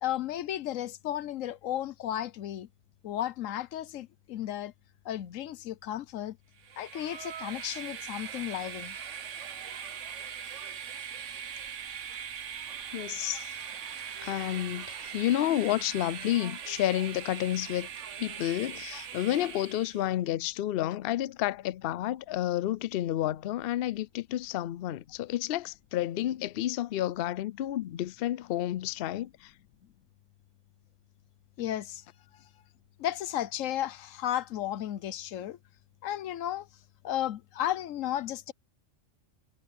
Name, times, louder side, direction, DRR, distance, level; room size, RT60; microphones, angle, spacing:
voice 1, 0.0-2.7 3.0-4.7 5.0-6.4 6.8-9.0 31.6-32.0 33.0-35.6 36.0-36.7 37.0-38.5, left 12 dB, 85° left, 1.1 m, -34 dB
Train, 6.6-20.1, right 8 dB, 70° right, 1.3 m, -41 dB
voice 2, 12.9-13.6 14.2-17.9 18.2-29.5, left 13 dB, 60° left, 0.6 m, -30 dB
omnidirectional pair, 1.3 m